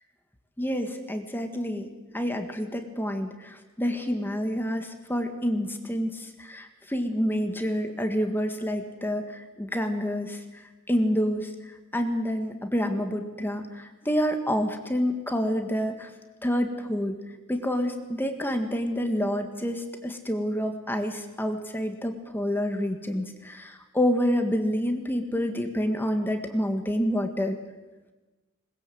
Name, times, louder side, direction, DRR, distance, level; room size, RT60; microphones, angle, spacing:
voice 1, 0.6-10.4 10.9-11.5 11.9-16.1 16.4-17.2 17.5-27.6, equal, 10° left, 6 dB, 1.7 m, -28 dB
20.5 x 20.5 x 7.8 m, 1.2 s
head